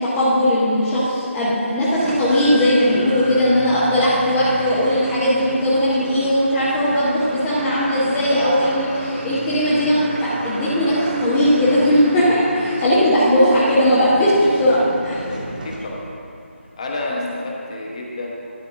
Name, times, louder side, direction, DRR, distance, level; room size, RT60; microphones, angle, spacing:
voice 1, 0.0-15.3, equal, 10° left, -10 dB, 0.7 m, -18 dB
sound 1, 2.0-16.3, right 2 dB, 35° right, 0.8 m, -33 dB
voice 2, 15.1-16.2 16.8-18.3, left 2 dB, 30° left, -2 dB, 1.2 m, -30 dB
12.0 x 4.2 x 6.3 m, 2.5 s
figure-of-eight pair, 160°, 7 cm